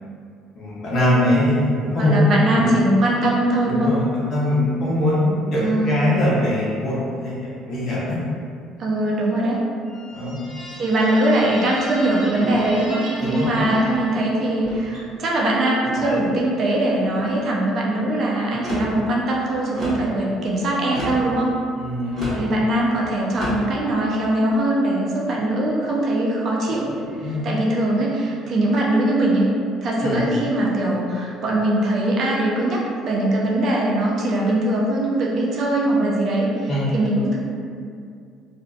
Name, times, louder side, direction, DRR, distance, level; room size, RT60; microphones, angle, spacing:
voice 1, 0.5-2.7 3.6-8.2 10.1-10.4 13.3-13.4 21.8-22.2 27.2-27.5 30.0-30.2 36.7-37.0, left 1 dB, 40° left, -9 dB, 0.7 m, -21 dB
voice 2, 2.0-3.9 5.6-6.2 8.8-9.6 10.8-21.5 22.3-26.9 27.2-29.5 29.8-37.4, right 1 dB, 45° right, -3 dB, 0.4 m, -21 dB
sound 1, 9.8-14.6, equal, 5° right, 1.0 m, -37 dB
sound 2, 12.4-12.9 13.5-14.0 14.6-15.1 15.9-16.3 16.9-17.4 18.5-19.0 19.7-20.1 20.9-21.3 22.1-22.5 23.3-23.7, equal, 25° right, 1.1 m, -29 dB
2.5 x 2.3 x 2.3 m, 2.3 s
cardioid pair, 135°, 0 cm